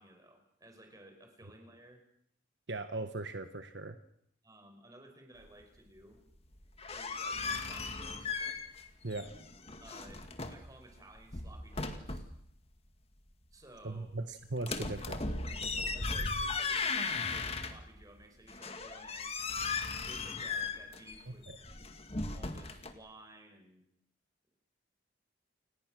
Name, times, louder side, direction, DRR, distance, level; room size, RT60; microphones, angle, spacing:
voice 1, 0.0-2.0 4.4-6.2 6.9-8.4 9.8-12.3 13.5-14.1 15.9-19.5 19.8-21.7 22.3-23.8, right 1 dB, 20° right, 5 dB, 5.2 m, -56 dB
voice 2, 2.7-4.0 9.0-9.3 13.8-15.2 21.3-21.6, right 2 dB, 60° right, 8 dB, 1.4 m, -39 dB
sound 1, 6.6-8.9 9.1-10.7 11.2-12.4 14.6-18.0 18.5-22.9, left 4 dB, 30° left, 1.9 m, -37 dB
29.5 x 19.0 x 6.4 m, 0.70 s
head